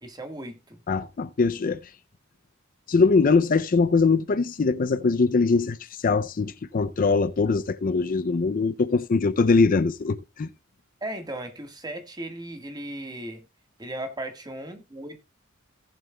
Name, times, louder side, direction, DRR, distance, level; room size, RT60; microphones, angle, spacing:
voice 1, 0.0-0.8 11.0-13.4 13.8-15.2, right 1 dB, 20° right, 1.6 m, -36 dB
voice 2, 0.9-1.8 2.9-5.8 6.0-10.5, left 4 dB, 45° left, 0.5 m, -22 dB
18.0 x 7.4 x 2.3 m
head